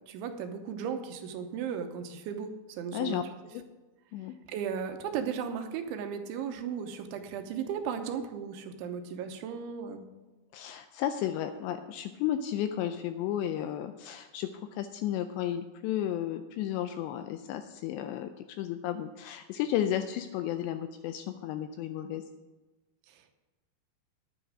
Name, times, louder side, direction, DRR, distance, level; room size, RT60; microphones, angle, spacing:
voice 1, 0.1-3.3 4.5-10.0 23.1-23.3, right 7 dB, 80° right, 6 dB, 3.2 m, -36 dB
voice 2, 2.9-3.2 3.5-3.6 4.1-4.3 10.5-22.2, left 11 dB, 85° left, 8 dB, 2.5 m, -33 dB
10.5 x 10.0 x 4.9 m, 1.2 s
omnidirectional pair, 5.5 m